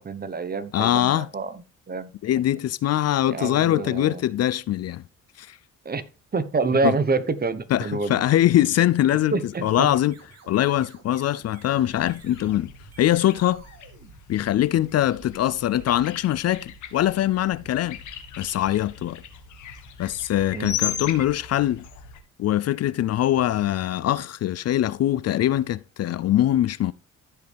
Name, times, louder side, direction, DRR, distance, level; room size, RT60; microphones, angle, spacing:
voice 1, 0.0-2.1 3.3-4.2 5.8-6.0 6.3-8.2 9.3-9.9 20.5-20.8, right 4 dB, 30° right, 1.1 m, -27 dB
voice 2, 0.7-1.3 2.2-5.0 5.4-5.6 6.8-7.0 7.7-9.4 9.6-10.2 10.5-12.7 13.0-13.6 14.3-18.0 18.4-19.2 20.0-21.8 22.4-26.9, left 13 dB, 55° left, 0.5 m, -22 dB
sound 1, 9.4-14.9, right 4 dB, 55° right, 2.9 m, -52 dB
sound 2, 11.8-22.2, left 8 dB, 75° left, 1.7 m, -38 dB
14.0 x 5.4 x 3.4 m
cardioid pair, 90°, 30 cm